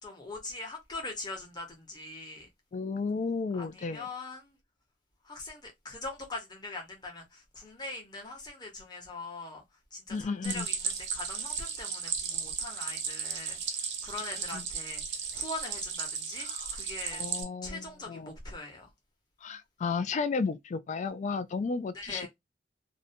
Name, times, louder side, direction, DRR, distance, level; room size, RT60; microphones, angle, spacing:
voice 1, 0.0-2.5 3.5-4.6 5.2-9.6 9.9-15.0 15.3-17.3 17.6-18.9 21.9-22.3, left 2 dB, 25° left, 0.9 m, -42 dB
voice 2, 2.7-4.1 10.1-10.7 14.5-14.7 16.4-16.7 17.1-18.3 19.4-22.3, left 4 dB, 40° left, 0.3 m, -33 dB
Stream, 10.4-17.4, right 6 dB, 80° right, 0.7 m, -35 dB
2.6 x 2.1 x 2.6 m
head